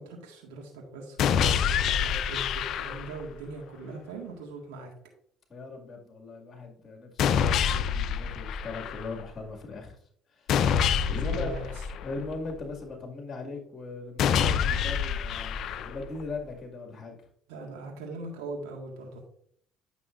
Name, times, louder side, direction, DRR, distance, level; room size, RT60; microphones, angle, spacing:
voice 1, 0.0-4.9 11.1-11.7 17.5-19.2, right 3 dB, 85° right, -1 dB, 1.7 m, -40 dB
sound 1, 1.2-3.2 7.2-9.2 10.5-12.5 14.2-16.2, left 8 dB, 65° left, 0.5 m, -27 dB
voice 2, 5.5-10.0 10.3-11.5 12.0-17.2, left 3 dB, 35° left, 1 dB, 2.0 m, -39 dB
9.8 x 6.1 x 2.5 m, 0.63 s
supercardioid pair, 70°, 0 cm